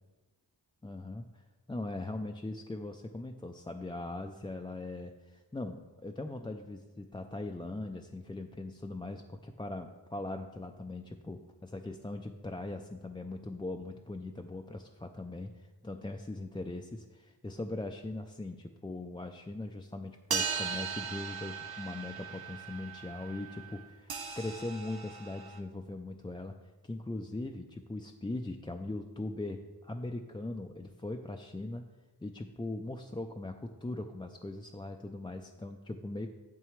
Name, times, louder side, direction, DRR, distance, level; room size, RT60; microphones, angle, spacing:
voice 1, 0.8-1.4 1.7-26.5 26.8-31.8 32.2-36.3, left 2 dB, 10° left, 4 dB, 0.3 m, -40 dB
sound 1, 20.3-25.6, right 6 dB, 60° right, 0.7 m, -38 dB
8.9 x 6.7 x 3.1 m, 1.2 s
wide cardioid pair, 45°, 42 cm